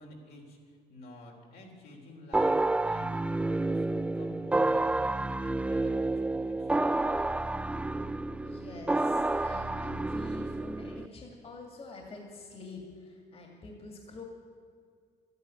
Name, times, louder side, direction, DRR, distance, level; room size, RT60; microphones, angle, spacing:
voice 1, 0.0-6.7, left 1 dB, 70° left, 0 dB, 3.5 m, -50 dB
sound 1, 2.3-11.1, right 2 dB, 5° right, 0.3 m, -29 dB
voice 2, 8.3-14.2, left 3 dB, 35° left, 2 dB, 2.3 m, -46 dB
12.5 x 10.5 x 9.4 m, 2.1 s
cardioid pair, 110°, 17 cm